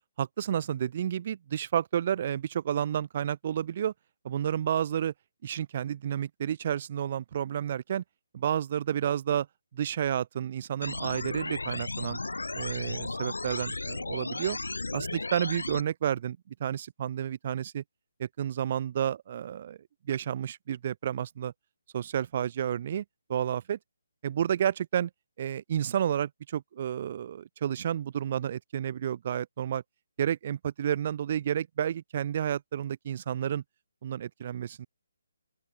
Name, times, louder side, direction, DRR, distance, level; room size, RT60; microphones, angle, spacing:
voice 1, 0.2-3.9 4.2-5.1 5.4-8.0 8.3-9.5 9.7-12.2 12.5-14.6 14.9-17.8 18.2-19.8 20.1-21.5 21.9-23.0 23.3-23.8 24.2-25.1 25.4-29.8 30.2-33.6 34.0-34.9, right 9 dB, 40° right, 1.6 m, -30 dB
sound 1, 10.8-15.8, left 3 dB, 80° left, 2.2 m, -35 dB
open air
figure-of-eight pair, 145°, 0 cm